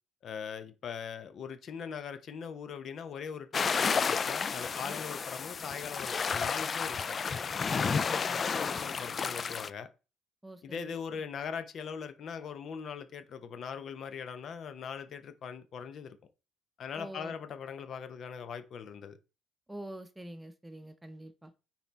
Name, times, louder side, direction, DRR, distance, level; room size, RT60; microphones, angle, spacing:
voice 1, 0.2-7.2 7.7-9.9 10.6-16.2 16.8-19.2, left 6 dB, 50° left, 0.8 m, -41 dB
sound 1, 3.5-9.7, left 5 dB, 35° left, 0.3 m, -31 dB
voice 2, 7.8-8.8 10.4-10.9 17.0-17.3 19.7-21.5, right 1 dB, 10° right, 0.9 m, -46 dB
5.7 x 4.4 x 4.2 m
cardioid pair, 100°, 0 cm